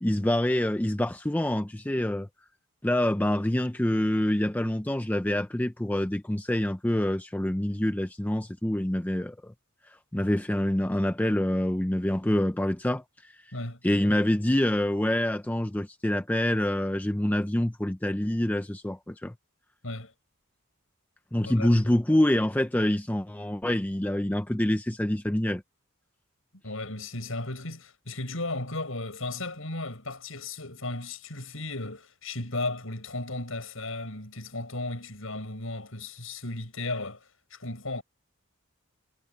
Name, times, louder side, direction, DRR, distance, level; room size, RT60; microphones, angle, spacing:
voice 1, 0.0-2.3 2.8-9.5 9.8-13.6 13.8-19.3 21.3-25.6, left 1 dB, 10° left, 0.5 m, -26 dB
voice 2, 26.6-38.0, left 2 dB, 70° left, 8.0 m, -35 dB
head